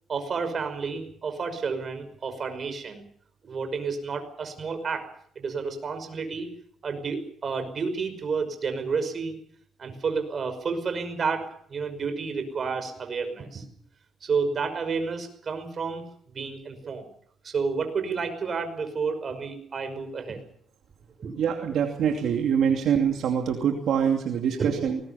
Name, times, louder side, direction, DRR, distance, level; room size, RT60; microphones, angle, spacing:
voice 1, 0.1-3.0 3.4-5.1 5.4-6.5 6.8-9.3 9.8-13.6 14.2-17.1 17.4-20.4 21.2-21.3 24.6-24.9, right 5 dB, 45° right, 8 dB, 5.6 m, -30 dB
voice 2, 21.4-25.0, right 7 dB, 75° right, 3 dB, 2.6 m, -24 dB
20.0 x 20.0 x 7.1 m, 0.65 s
cardioid pair, 90°, 0 cm